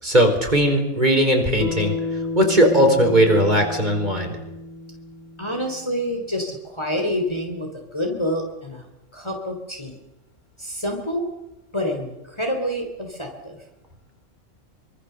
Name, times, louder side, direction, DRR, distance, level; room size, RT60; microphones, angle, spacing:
voice 1, 0.0-4.4, equal, 30° right, 3 dB, 4.5 m, -18 dB
Bass guitar, 1.6-6.0, left 3 dB, 70° left, 3.0 m, -31 dB
voice 2, 5.4-8.8 9.1-10.0 10.6-11.3 11.7-13.6, equal, 20° left, 2 dB, 3.3 m, -27 dB
25.0 x 24.5 x 6.8 m, 1.0 s
omnidirectional pair, 1.4 m